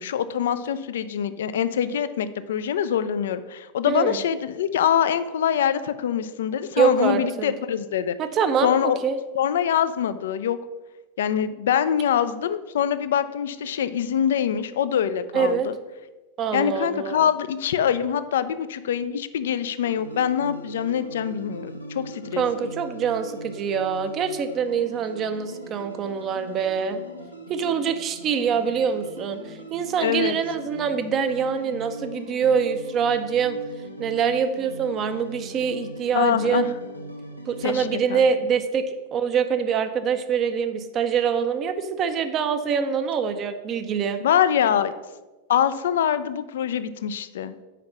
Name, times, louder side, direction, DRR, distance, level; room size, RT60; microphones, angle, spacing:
voice 1, 0.0-8.2 8.6-9.0 9.3-10.6 11.2-15.7 16.5-22.7 30.0-30.3 36.1-36.7 37.6-38.3 44.2-44.9 45.5-47.5, left 9 dB, 60° left, 13 dB, 0.4 m, -24 dB
voice 2, 3.9-4.2 6.8-7.5 8.2-8.7 9.0-9.2 15.3-15.7 16.4-17.3 22.4-27.0 27.5-33.6 34.0-36.7 37.5-44.2, right 6 dB, 30° right, 9 dB, 0.6 m, -25 dB
sound 1, 19.8-37.9, equal, 85° left, 0.9 m, -40 dB
5.8 x 5.1 x 5.9 m, 1.1 s
figure-of-eight pair, 90°, 0 cm